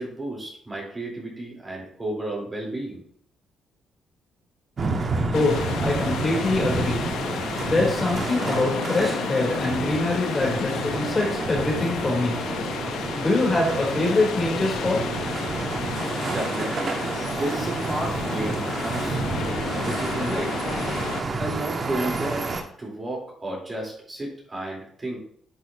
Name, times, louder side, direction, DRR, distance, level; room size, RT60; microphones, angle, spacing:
voice 1, 0.0-3.0 16.3-17.0 17.3-20.7 21.4-22.5 22.8-25.2, right 1 dB, 25° right, -3 dB, 4.0 m, -32 dB
sound 1, 4.8-22.6, right 3 dB, 45° right, 1.4 m, -29 dB
sound 2, 5.3-21.2, left 8 dB, 80° left, 0.8 m, -32 dB
voice 2, 5.3-7.0 7.6-12.4 13.1-15.0, left 2 dB, 30° left, -3 dB, 3.7 m, -24 dB
11.5 x 6.3 x 3.0 m, 0.62 s
cardioid pair, 90°, 0 cm